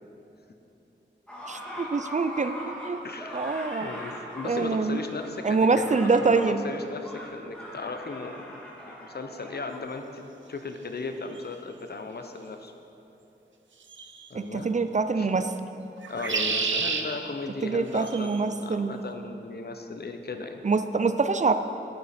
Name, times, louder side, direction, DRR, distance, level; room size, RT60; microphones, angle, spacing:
sound 1, 1.3-9.8, equal, 5° left, 1.9 m, -41 dB
voice 1, 1.5-3.0 3.3-3.9 4.4-5.0 5.4-6.6 14.3-15.5 17.6-19.0 20.6-21.5, right 4 dB, 40° right, 10 dB, 0.4 m, -25 dB
voice 2, 3.0-3.5 3.8-8.4 8.9-10.2 10.5-12.7 14.3-14.7 15.2-15.3 16.1-20.6, left 3 dB, 60° left, 6 dB, 0.8 m, -36 dB
sound 2, 11.3-11.4 13.9-14.3 16.0-17.0 18.0-18.4, right 5 dB, 85° right, 0.7 m, -29 dB
10.5 x 9.1 x 4.3 m, 3.0 s
wide cardioid pair, 100°, 19 cm